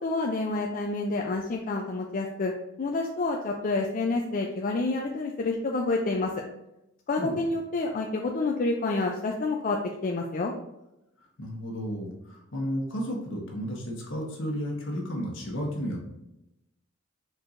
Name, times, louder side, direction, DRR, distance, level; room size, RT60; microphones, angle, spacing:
voice 1, 0.0-2.5 2.8-6.3 7.1-10.5, left 3 dB, 40° left, 1 dB, 0.4 m, -28 dB
voice 2, 11.4-16.0, equal, 65° left, -1 dB, 1.3 m, -33 dB
4.6 x 4.3 x 2.6 m, 0.89 s
head